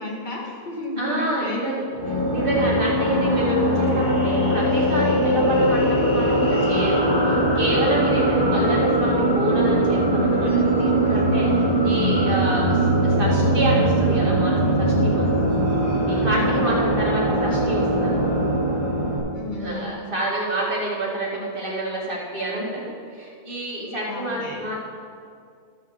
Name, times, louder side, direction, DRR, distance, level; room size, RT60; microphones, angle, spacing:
voice 1, 0.0-1.7 8.4-8.9 10.8-12.4 16.2-16.8 19.3-19.9 24.1-24.7, left 1 dB, 30° left, -2 dB, 1.7 m, -33 dB
voice 2, 1.0-11.5 11.8-15.5 16.1-18.3 19.6-24.8, right 1 dB, 35° right, -4 dB, 2.1 m, -27 dB
sound 1, 1.9-19.2, right 1 dB, 75° left, 3.2 m, -21 dB
13.5 x 4.8 x 6.4 m, 2.2 s
omnidirectional pair, 1.6 m